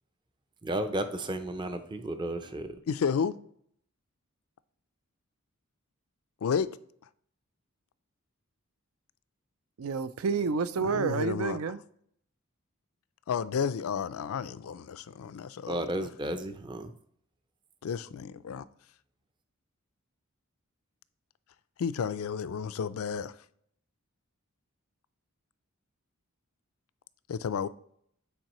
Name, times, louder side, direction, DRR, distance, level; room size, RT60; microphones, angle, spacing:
voice 1, 0.6-2.7 15.7-16.9, right 1 dB, 20° right, 0.5 m, -33 dB
voice 2, 2.9-3.3 6.4-6.7 10.8-11.6 13.3-15.8 17.8-18.6 21.8-23.3 27.3-27.7, left 6 dB, 70° left, 0.4 m, -31 dB
voice 3, 9.8-11.8, right 5 dB, 75° right, 0.4 m, -29 dB
9.1 x 4.4 x 3.0 m
head